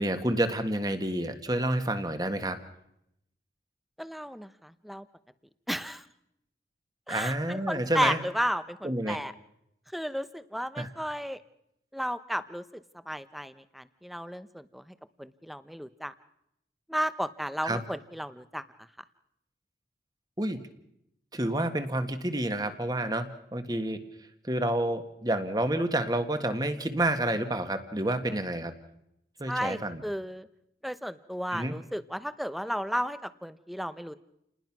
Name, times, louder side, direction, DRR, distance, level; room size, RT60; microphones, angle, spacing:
voice 1, 0.0-2.6 7.1-8.2 8.8-9.2 10.8-10.9 17.6-17.8 20.4-20.6 21.3-24.0 24.4-28.7 29.4-30.0 31.5-31.8, right 1 dB, 20° right, 8 dB, 1.8 m, -29 dB
voice 2, 4.0-5.0 5.7-6.0 7.1-9.3 9.9-11.4 11.9-12.6 13.1-14.8 15.2-16.1 16.9-18.6 29.5-30.5 30.8-34.2, equal, ahead, 13 dB, 0.8 m, -33 dB
29.5 x 20.0 x 6.1 m, 0.79 s
head